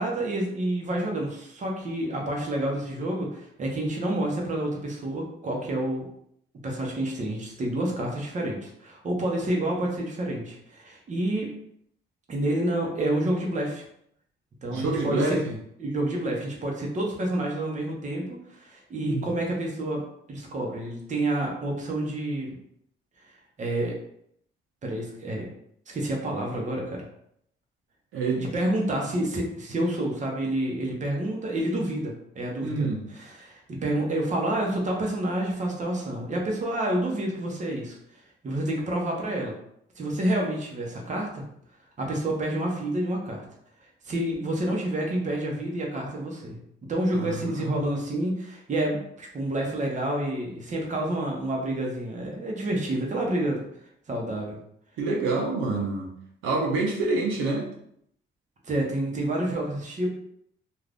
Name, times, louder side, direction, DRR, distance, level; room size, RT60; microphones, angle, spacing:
voice 1, 0.0-6.0 6.6-11.5 12.3-13.8 14.6-15.4 15.8-20.0 20.3-22.6 23.6-24.0 24.8-25.5 25.9-27.0 28.4-38.0 38.4-39.5 40.0-41.4 42.0-43.4 44.0-46.6 46.9-53.6 54.1-54.6 58.6-60.1, right 1 dB, 40° right, -1 dB, 0.9 m, -29 dB
voice 2, 14.7-15.6 19.0-19.3 28.1-28.4 32.6-33.0 47.1-47.9 55.0-56.1 56.4-57.7, right 3 dB, 85° right, -1 dB, 0.7 m, -27 dB
2.5 x 2.5 x 3.4 m, 0.70 s
cardioid pair, 90°, 20 cm